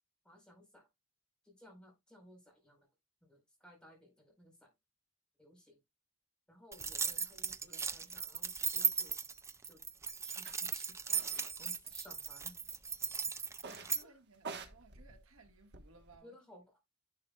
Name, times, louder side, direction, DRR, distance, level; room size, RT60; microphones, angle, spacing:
voice 1, 0.2-0.9 1.4-2.9 3.2-4.7 5.4-5.8 6.5-9.2 9.6-9.8 10.2-10.9 11.3-12.5 14.0-14.2 16.2-16.8, equal, 5° left, 4.4 m, -59 dB
sound 1, 6.7-14.0, right 6 dB, 15° right, 0.4 m, -37 dB
sound 2, 10.4-10.6 11.1-11.5 11.8-12.6 13.6-14.0 14.3-16.2, right 4 dB, 50° right, 1.3 m, -48 dB
voice 2, 13.8-16.3, right 3 dB, 75° right, 1.5 m, -62 dB
10.5 x 5.8 x 2.3 m
head